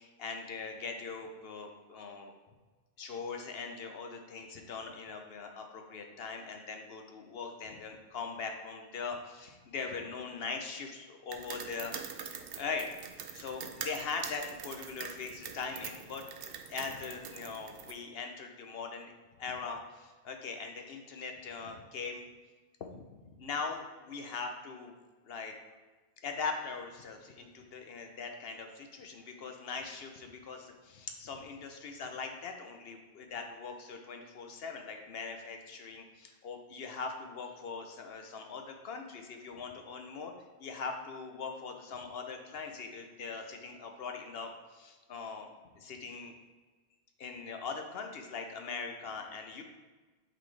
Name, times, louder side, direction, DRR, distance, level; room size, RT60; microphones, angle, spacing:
voice 1, 0.0-2.3 3.0-12.9 13.3-16.2 16.7-19.1 19.4-22.2 22.9-24.9 25.3-25.5 26.2-40.3 40.6-46.3 47.2-49.6, left 5 dB, 65° left, 4 dB, 1.0 m, -41 dB
sound 1, 11.3-17.9, right 7 dB, 65° right, 0.7 m, -44 dB
7.8 x 4.2 x 3.3 m, 1.3 s
omnidirectional pair, 1.1 m